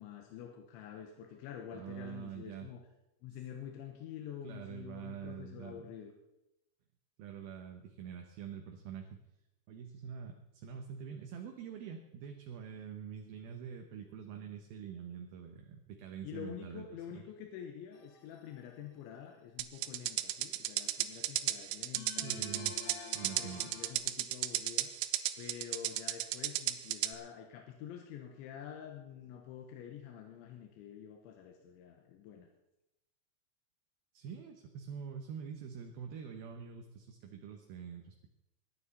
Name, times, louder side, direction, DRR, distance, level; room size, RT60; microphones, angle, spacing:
voice 1, 0.0-2.8 3.2-6.1 16.2-22.8 23.2-24.9 25.4-32.5, left 9 dB, 85° left, 3 dB, 3.5 m, -48 dB
voice 2, 1.7-2.7 4.4-5.9 7.2-9.2 9.7-16.9 17.1-17.2 22.2-23.8 34.1-38.3, right 7 dB, 70° right, 4 dB, 2.4 m, -45 dB
sound 1, 17.9-18.6 22.0-23.9, left 7 dB, 65° left, 3.0 m, -48 dB
sound 2, 19.6-27.1, right 15 dB, 90° right, 3.1 m, -34 dB
22.0 x 9.8 x 4.2 m, 0.91 s
omnidirectional pair, 5.3 m